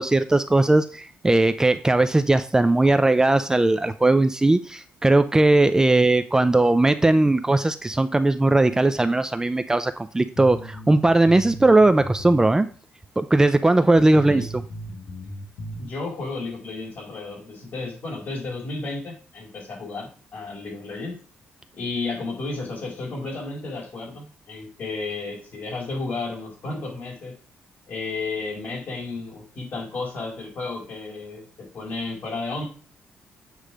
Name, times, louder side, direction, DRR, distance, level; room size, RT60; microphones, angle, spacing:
voice 1, 0.0-12.7 13.2-14.6, right 2 dB, 15° right, 10 dB, 0.5 m, -19 dB
sound 1, 10.4-12.4 12.7-12.8 13.4-13.5 14.0-15.8, equal, 75° left, 2.1 m, -37 dB
voice 2, 15.8-21.2 21.8-27.3 27.9-32.6, left 3 dB, 50° left, -1 dB, 4.7 m, -32 dB
8.5 x 3.2 x 6.2 m, 0.39 s
cardioid pair, 85°, 4 cm